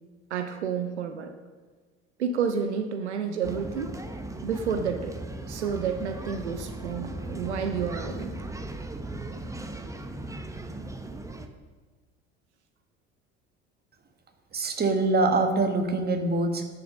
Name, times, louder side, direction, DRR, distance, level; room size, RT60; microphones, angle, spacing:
voice 1, 0.3-1.3 2.2-4.0 4.4-5.2 5.5-8.3, right 6 dB, 85° right, 8 dB, 0.7 m, -30 dB
sound 1, 3.4-11.5, right 2 dB, 10° right, 1.0 m, -37 dB
voice 2, 14.5-16.6, right 2 dB, 30° right, 5 dB, 1.7 m, -24 dB
11.0 x 6.2 x 6.6 m, 1.4 s
hypercardioid pair, 65°, 33 cm